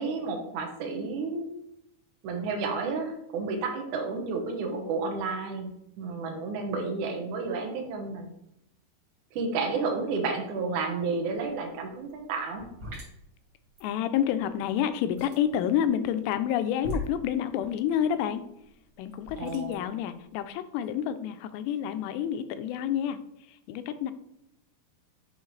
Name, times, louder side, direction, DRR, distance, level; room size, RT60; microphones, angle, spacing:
voice 1, 0.0-1.5 2.2-8.3 9.3-12.7 19.4-19.8, right 4 dB, 75° right, 2 dB, 1.9 m, -31 dB
sound 1, 11.3-11.5 11.8-20.5, left 1 dB, 40° right, 3.1 m, -41 dB
voice 2, 13.8-18.4 19.0-23.2 23.5-24.1, left 9 dB, 85° left, 10 dB, 2.7 m, -29 dB
8.0 x 4.5 x 3.2 m, 0.79 s
omnidirectional pair, 4.9 m